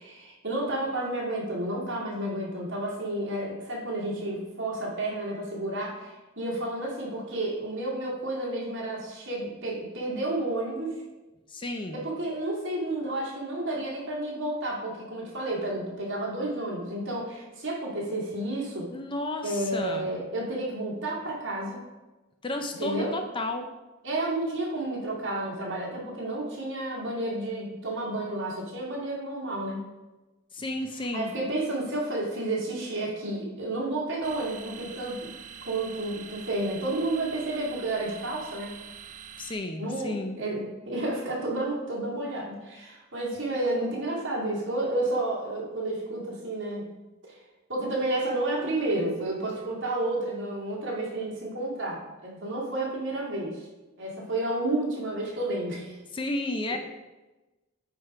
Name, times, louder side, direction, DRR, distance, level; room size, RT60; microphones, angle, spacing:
voice 1, 0.0-10.9 11.9-18.9 19.4-21.8 22.8-23.1 24.0-29.9 31.0-35.3 35.6-38.8 39.8-46.9 47.2-47.4 47.7-53.7 54.0-56.0, right 2 dB, 55° right, -4 dB, 2.2 m, -31 dB
voice 2, 11.5-12.0 18.9-20.1 22.4-23.7 30.5-31.3 39.4-40.4 56.1-56.8, left 2 dB, 25° left, 5 dB, 0.5 m, -32 dB
sound 1, 34.2-39.5, right 7 dB, 35° right, 0.4 m, -45 dB
8.6 x 3.6 x 4.8 m, 1.1 s
head